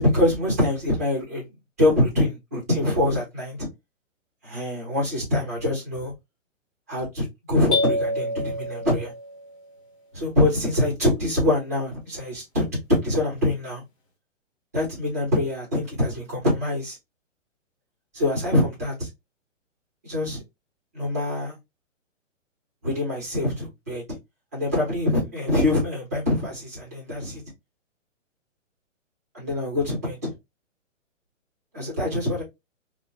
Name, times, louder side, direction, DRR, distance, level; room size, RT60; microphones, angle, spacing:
voice 1, 0.0-1.5 1.8-3.6 4.4-6.1 6.9-9.1 10.1-13.8 14.7-17.0 18.1-19.1 20.0-20.4 20.9-21.6 22.8-24.0 24.5-27.4 29.3-30.3 31.7-32.4, left 1 dB, 15° right, 0.5 m, -24 dB
sound 1, 7.7-9.6, left 2 dB, 25° left, 0.9 m, -27 dB
2.9 x 2.0 x 2.6 m
hypercardioid pair, 175°, 38 cm